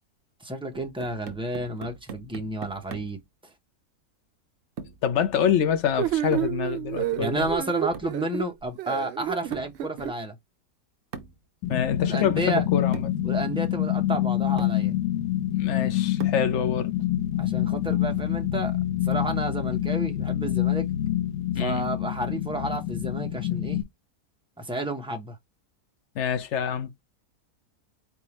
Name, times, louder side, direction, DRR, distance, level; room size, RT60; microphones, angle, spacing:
voice 1, 0.4-3.2 7.2-10.4 12.1-12.6 13.2-14.9 17.4-18.7 19.1-20.9 21.6-23.8 24.6-25.4, right 1 dB, 5° right, 0.4 m, -31 dB
sound 1, 0.7-3.3 4.8-5.1 6.3-6.6 7.9-8.2 9.5-9.8 11.1-11.4 12.4-12.5 12.9-13.2 14.1-14.2 14.6-14.9 16.2-16.6, right 6 dB, 60° right, 1.1 m, -41 dB
voice 2, 5.0-7.5 11.7-13.1 15.5-16.9 21.5-21.9 26.1-26.9, left 8 dB, 60° left, 0.9 m, -26 dB
sound 2, 6.0-10.1, right 13 dB, 80° right, 0.6 m, -29 dB
sound 3, 11.6-23.8, left 12 dB, 80° left, 1.2 m, -26 dB
4.3 x 3.5 x 2.9 m
omnidirectional pair, 1.7 m